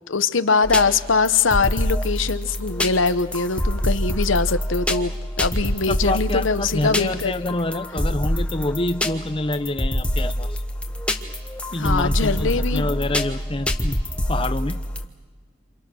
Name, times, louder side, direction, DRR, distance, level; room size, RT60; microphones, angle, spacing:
voice 1, 0.1-7.6 11.8-12.9, left 4 dB, 90° left, 12 dB, 0.9 m, -22 dB
sound 1, 0.6-15.1, left 1 dB, 5° left, 1.2 m, -26 dB
voice 2, 5.9-10.6 11.7-14.0 14.2-14.8, left 2 dB, 25° left, 10 dB, 0.7 m, -27 dB
28.0 x 27.5 x 6.3 m, 1.4 s
head